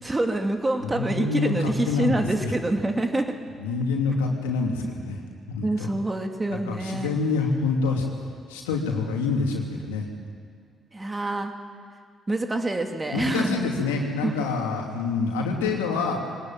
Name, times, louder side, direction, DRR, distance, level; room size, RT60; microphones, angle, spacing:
voice 1, 0.0-3.3 5.6-7.1 10.9-11.5 12.3-13.6 14.2-14.4, right 2 dB, 25° right, 4 dB, 2.7 m, -26 dB
voice 2, 0.9-2.2 2.4-2.5 3.6-5.2 5.5-5.9 6.5-8.0 8.5-10.1 13.1-16.2, left 4 dB, 90° left, 0 dB, 2.8 m, -26 dB
22.5 x 19.0 x 9.2 m, 2.1 s
hypercardioid pair, 45°, 0 cm